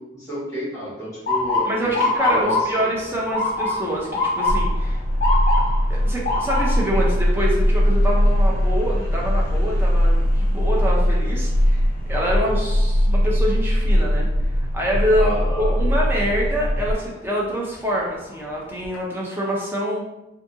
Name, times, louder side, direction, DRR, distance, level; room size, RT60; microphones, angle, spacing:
voice 1, 0.1-2.7 15.2-15.8, equal, 15° left, -7 dB, 1.2 m, -30 dB
Motor vehicle (road) / Siren, 1.3-13.2 13.6-14.0 14.8-15.1 17.0-17.2 17.8-17.9 18.3-19.0, left 2 dB, 45° left, 0.8 m, -27 dB
voice 2, 1.7-5.0 5.9-11.8 12.1-14.3 14.6-20.1, equal, 10° right, -4 dB, 0.5 m, -26 dB
sound 1, 4.5-16.9, equal, 80° left, 0.4 m, -20 dB
2.6 x 2.5 x 2.6 m, 0.94 s
head